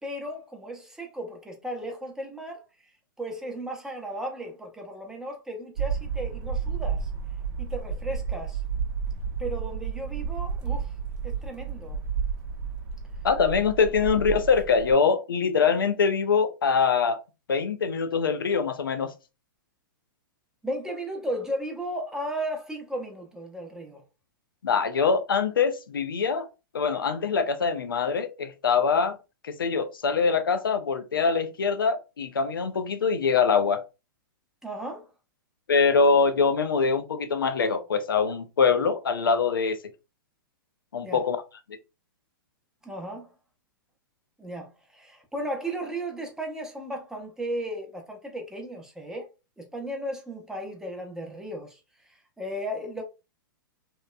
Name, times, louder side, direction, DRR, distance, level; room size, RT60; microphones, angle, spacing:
voice 1, 0.0-2.6 3.2-7.1 7.6-8.6 9.4-10.9 11.2-12.0 20.6-24.0 34.6-35.1 41.0-41.2 42.8-43.3 44.4-49.3 49.6-53.0, right 1 dB, 5° right, 0.6 m, -35 dB
sound 1, 5.8-14.9, right 6 dB, 50° right, 0.6 m, -31 dB
voice 2, 13.2-17.2 17.5-19.1 24.6-26.5 26.7-29.2 29.4-33.8 35.7-39.8 40.9-41.4, left 5 dB, 85° left, 0.4 m, -23 dB
2.9 x 2.0 x 2.2 m
hypercardioid pair, 115°, 11 cm